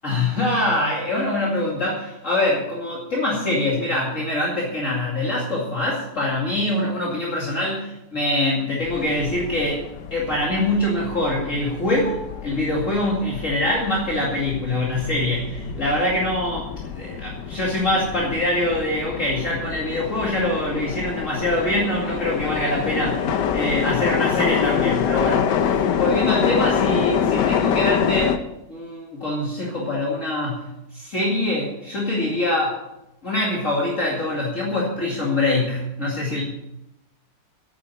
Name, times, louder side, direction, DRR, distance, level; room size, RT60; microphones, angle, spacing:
voice 1, 0.0-9.8 10.1-28.4 28.7-30.6 30.9-32.8 33.2-36.4, left 1 dB, 45° left, -4 dB, 2.7 m, -24 dB
sound 1, 8.8-28.4, left 8 dB, 80° left, 1.5 m, -26 dB
9.5 x 8.9 x 8.6 m, 0.89 s
omnidirectional pair, 1.9 m